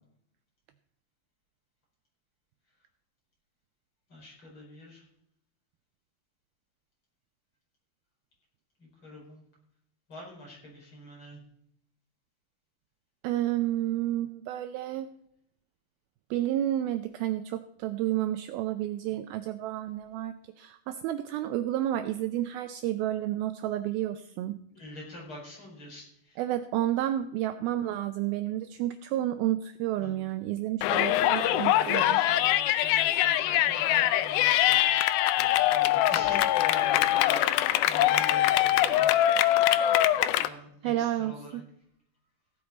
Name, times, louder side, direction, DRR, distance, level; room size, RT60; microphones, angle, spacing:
voice 1, 4.1-5.1 8.8-9.4 10.1-11.4 24.7-26.4 30.0-30.2 31.5-35.4 35.6-37.5 37.8-39.8 40.1-41.6, left 1 dB, 30° left, -2 dB, 5.3 m, -46 dB
voice 2, 13.2-15.1 16.3-24.6 26.4-32.2 40.8-41.6, right 13 dB, 85° right, 10 dB, 2.1 m, -30 dB
Yell, 30.8-40.5, left 13 dB, 85° left, 2.1 m, -23 dB
16.0 x 9.4 x 4.2 m, 0.73 s
omnidirectional pair, 4.9 m